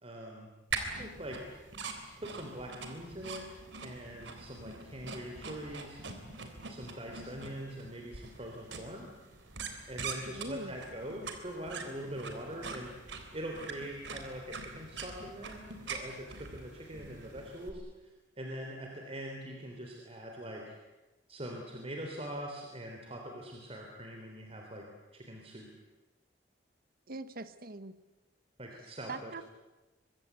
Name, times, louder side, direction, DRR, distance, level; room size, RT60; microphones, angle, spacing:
voice 1, 0.0-0.5 1.0-1.6 2.2-3.5 3.8-6.0 6.7-9.1 9.9-17.8 18.4-20.8 21.3-24.9 25.1-25.7 28.6-29.3, right 1 dB, 35° right, 1 dB, 3.6 m, -43 dB
sound 1, 0.7-17.7, right 4 dB, 75° right, 3.6 m, -44 dB
voice 2, 10.3-10.8 27.1-28.0 29.1-29.4, right 2 dB, 55° right, 13 dB, 1.3 m, -42 dB
24.5 x 23.0 x 8.3 m, 1.1 s
head